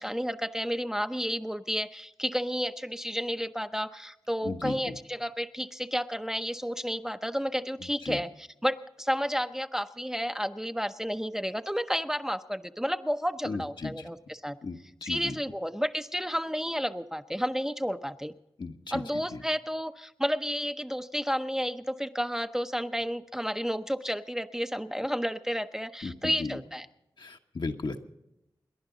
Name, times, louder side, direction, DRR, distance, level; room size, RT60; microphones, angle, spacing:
voice 1, 0.0-14.6 15.0-18.3 18.9-26.9, equal, 5° right, 8 dB, 0.7 m, -31 dB
voice 2, 4.4-5.0 7.8-8.2 13.4-14.1 14.6-15.4 18.6-19.4 26.0-26.6 27.2-28.0, left 3 dB, 65° left, 4 dB, 1.2 m, -36 dB
28.5 x 11.0 x 3.9 m, 0.90 s
wide cardioid pair, 60°, 9 cm